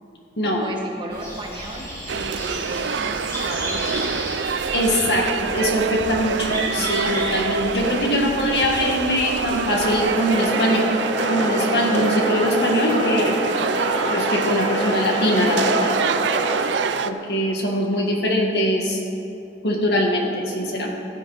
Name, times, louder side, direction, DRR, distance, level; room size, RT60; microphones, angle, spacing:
voice 1, 0.6-4.1, right 1 dB, 25° right, -1 dB, 1.7 m, -35 dB
sound 1, 1.1-10.0, equal, 15° left, 3.7 m, -34 dB
sound 2, 2.1-17.1, right 5 dB, 80° right, 0.5 m, -26 dB
voice 2, 4.7-10.9 11.3-13.4 14.1-16.0 17.0-19.0 19.6-20.9, equal, 65° left, 0 dB, 1.9 m, -22 dB
sound 3, 9.7-16.5, equal, 45° left, 3.8 m, -26 dB
15.5 x 12.0 x 4.1 m, 2.7 s
head